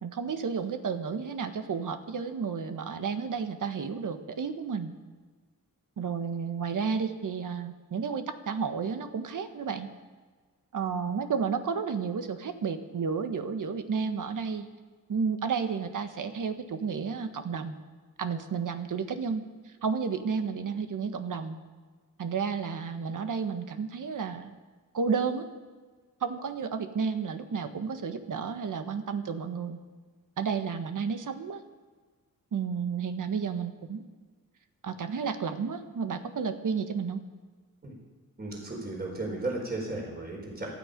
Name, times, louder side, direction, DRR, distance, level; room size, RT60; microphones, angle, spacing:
voice 1, 0.0-4.9 6.0-9.9 10.7-14.6 15.1-17.7 18.2-19.4 19.8-21.6 22.2-24.5 24.9-25.5 26.2-29.8 30.4-31.6 32.5-34.0 34.8-37.2, right 6 dB, 60° right, 8 dB, 1.5 m, -32 dB
voice 2, 38.4-40.7, right 2 dB, 25° right, -1 dB, 4.5 m, -35 dB
28.0 x 9.6 x 5.3 m, 1.4 s
wide cardioid pair, 105°, 35 cm